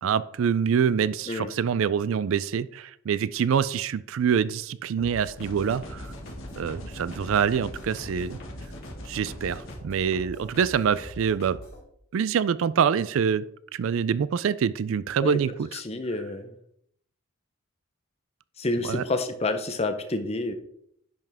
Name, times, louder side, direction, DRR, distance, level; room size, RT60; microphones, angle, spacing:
voice 1, 0.0-6.1 6.6-8.4 9.1-11.6 12.1-13.5 13.7-15.8 18.8-19.0, right 7 dB, 65° right, 17 dB, 0.3 m, -25 dB
sound 1, 5.0-11.8, equal, 45° left, 3.1 m, -43 dB
sound 2, 5.4-9.8, left 1 dB, 65° left, 1.5 m, -42 dB
voice 2, 15.7-16.5 18.6-20.5, left 2 dB, 30° left, 8 dB, 0.7 m, -28 dB
10.5 x 5.6 x 3.5 m, 0.72 s
head